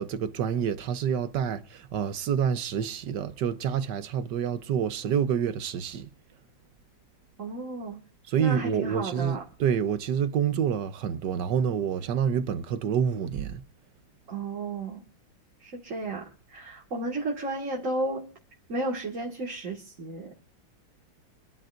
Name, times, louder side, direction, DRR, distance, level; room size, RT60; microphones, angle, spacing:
voice 1, 0.0-6.1 8.3-13.6, right 8 dB, 65° right, 1.4 m, -28 dB
voice 2, 7.4-8.0 8.4-9.4 14.3-15.0 15.6-18.3 18.7-20.3, right 2 dB, 40° right, 2.2 m, -33 dB
27.0 x 10.5 x 2.6 m
omnidirectional pair, 2.1 m